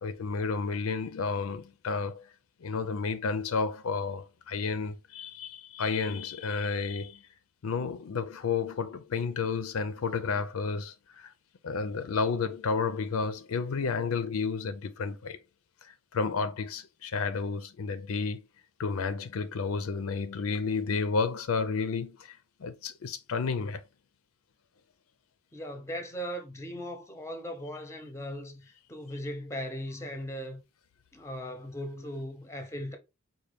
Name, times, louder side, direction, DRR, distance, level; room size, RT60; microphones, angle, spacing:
voice 1, 0.0-2.2 2.6-7.2 7.6-11.3 11.6-15.4 15.8-18.4 18.8-23.8, left 4 dB, 75° left, 0.4 m, -31 dB
voice 2, 25.5-30.6 31.1-33.0, equal, 15° left, 0.6 m, -38 dB
4.3 x 2.2 x 3.3 m
head